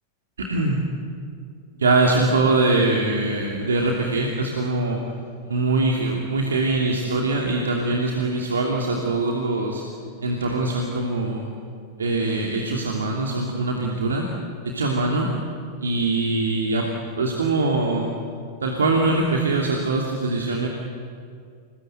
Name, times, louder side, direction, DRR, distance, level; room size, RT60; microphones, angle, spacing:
voice 1, 0.4-0.9 1.8-5.0 5.4-9.8 10.2-11.5 12.0-14.3 14.7-15.3 15.8-18.1 18.6-20.7, right 2 dB, 70° right, 0 dB, 2.9 m, -22 dB
27.5 x 21.0 x 9.2 m, 2.3 s
figure-of-eight pair, 90°, 0 cm